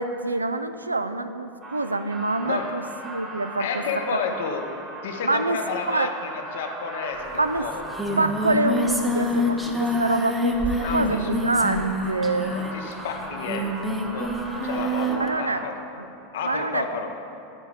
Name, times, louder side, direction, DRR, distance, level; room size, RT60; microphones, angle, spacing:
voice 1, 0.0-3.7 5.2-5.6 5.9-6.1 7.4-7.7 8.2-12.6 15.1-15.6 16.0-16.1 16.4-16.8, right 2 dB, 90° right, 10 dB, 0.3 m, -26 dB
sound 1, 1.6-15.7, right 1 dB, 30° right, 1.2 m, -39 dB
voice 2, 2.4-2.8 3.6-4.7 5.0-7.9 10.8-11.3 12.4-14.4 14.6-15.8 16.3-17.2, left 5 dB, 65° left, 4 dB, 0.8 m, -31 dB
Singing, 7.3-7.4 7.6-15.3, equal, 10° right, 0.9 m, -26 dB
10.5 x 4.6 x 4.7 m, 2.7 s
figure-of-eight pair, 85°, 0 cm